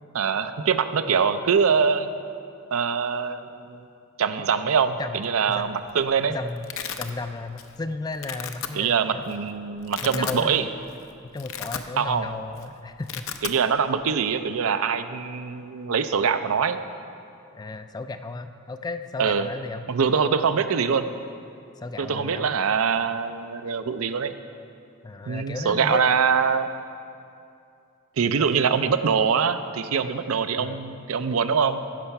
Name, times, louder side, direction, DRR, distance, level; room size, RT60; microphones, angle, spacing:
voice 1, 0.1-2.1 2.7-3.9 4.2-6.4 8.7-10.7 12.0-12.3 13.4-16.8 19.2-19.5 19.9-21.1 22.0-24.3 25.3-26.7 28.2-31.8, right 6 dB, 70° right, 10 dB, 0.5 m, -23 dB
Domestic sounds home sounds, 5.6-6.0 6.2-7.1 7.6-7.8 8.1-8.7 9.3-9.4 9.8-10.4 10.8-11.0 11.3-12.2 12.5-12.7 12.9-13.6, left 8 dB, 65° left, 0.6 m, -34 dB
voice 2, 6.3-6.7 7.0-9.2 10.1-10.6 11.3-13.3 13.6-13.7 17.5-19.8 21.8-22.5 25.0-26.0 28.3-28.5 30.6-30.8, left 3 dB, 20° left, 9 dB, 0.3 m, -34 dB
15.0 x 5.6 x 5.8 m, 2.5 s
head